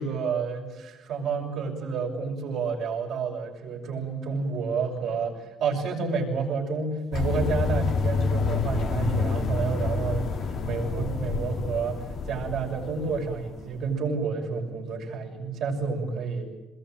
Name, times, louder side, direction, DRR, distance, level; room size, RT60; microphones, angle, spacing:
voice 1, 0.0-5.3 5.6-10.2 10.6-12.0 12.3-16.5, right 5 dB, 75° right, 0 dB, 6.5 m, -29 dB
sound 1, 7.1-13.9, left 4 dB, 70° left, 2.6 m, -28 dB
23.0 x 21.0 x 9.1 m, 1.1 s
supercardioid pair, 65°, 0 cm